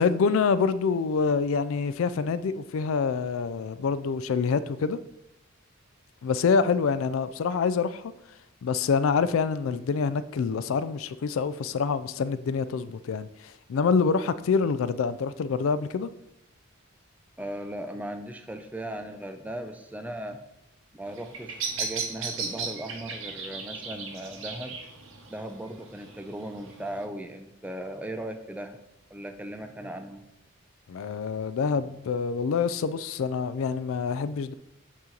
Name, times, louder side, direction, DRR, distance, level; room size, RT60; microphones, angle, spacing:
voice 1, 0.0-5.0 6.2-8.1 8.6-16.1 30.9-34.5, left 5 dB, 70° left, 14 dB, 0.3 m, -26 dB
voice 2, 17.4-20.4 20.9-24.8 25.3-28.8 29.1-30.2, right 1 dB, 5° right, 7 dB, 0.4 m, -37 dB
Bird vocalization bird call bird song, 21.1-27.0, right 5 dB, 65° right, 0.9 m, -37 dB
8.5 x 2.9 x 3.8 m, 0.85 s
head